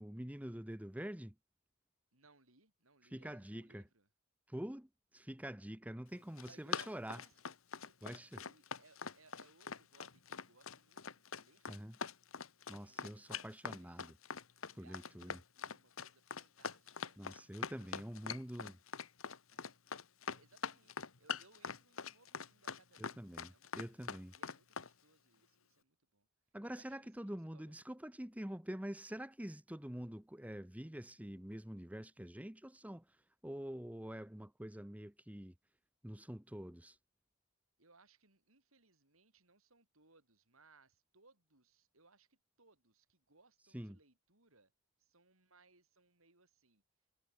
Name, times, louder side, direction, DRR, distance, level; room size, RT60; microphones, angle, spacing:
voice 1, 0.0-1.3 3.0-3.8 4.5-7.2 8.0-8.3 11.7-12.0 12.7-14.2 14.7-15.4 17.2-18.8 23.0-24.4 26.5-33.2 33.4-35.5 36.0-37.0 43.7-44.0, equal, 5° right, 1.0 m, -46 dB
voice 2, 2.1-4.1 6.5-7.4 7.8-11.8 12.8-14.1 14.7-18.2 19.5-19.8 20.3-24.1 24.3-26.3 26.7-27.7 37.8-44.7 45.0-46.8, right 3 dB, 80° right, 8.0 m, -68 dB
Run, 6.2-24.9, left 6 dB, 75° left, 1.6 m, -43 dB
head